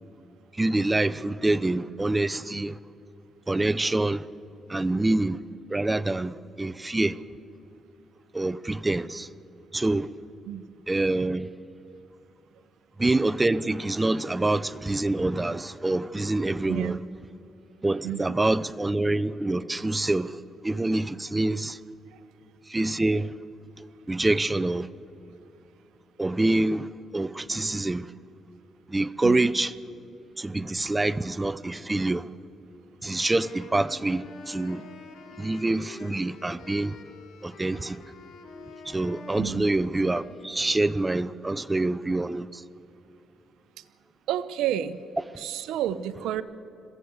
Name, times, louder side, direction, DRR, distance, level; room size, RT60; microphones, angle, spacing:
voice 1, 0.5-2.8 3.5-4.2 4.7-5.4 5.7-7.2 8.3-9.3 9.7-10.1 10.9-11.5 13.0-17.0 17.8-20.4 20.6-21.8 22.7-23.3 24.1-24.9 26.2-28.1 28.9-29.7 30.4-32.3 33.0-34.8 35.4-37.0 37.4-38.0 38.9-42.6, right 2 dB, 15° right, 0.6 m, -26 dB
voice 2, 16.7-17.0 18.0-18.4 22.1-22.2 29.2-29.4 39.4-39.7 43.8-43.9 44.3-45.0 45.4-46.4, right 11 dB, 90° right, 0.8 m, -30 dB
Wind instrument woodwind instrument, 33.2-41.3, left 3 dB, 70° left, 2.4 m, -47 dB
22.0 x 15.0 x 8.0 m
cardioid pair, 90°, 0 cm